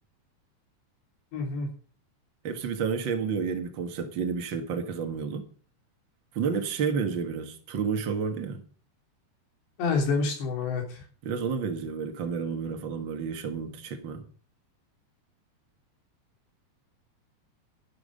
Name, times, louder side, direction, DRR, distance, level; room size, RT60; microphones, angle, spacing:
voice 1, 1.3-1.7 9.8-11.0, left 4 dB, 85° left, 5.6 m, -28 dB
voice 2, 2.4-5.5 6.3-8.6 11.2-14.3, right 6 dB, 85° right, 1.0 m, -30 dB
12.0 x 12.0 x 5.3 m
omnidirectional pair, 4.9 m